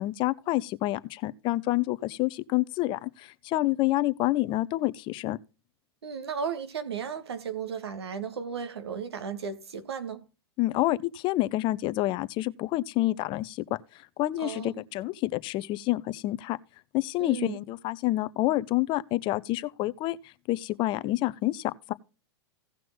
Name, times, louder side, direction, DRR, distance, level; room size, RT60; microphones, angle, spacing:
voice 1, 0.0-5.4 10.6-13.8 14.2-16.6 16.9-21.9, left 17 dB, 35° left, 0.7 m, -28 dB
voice 2, 6.0-10.3 14.4-14.8 17.2-17.6, right 6 dB, 75° right, 1.8 m, -35 dB
17.0 x 6.0 x 3.7 m
hypercardioid pair, 105°, 14 cm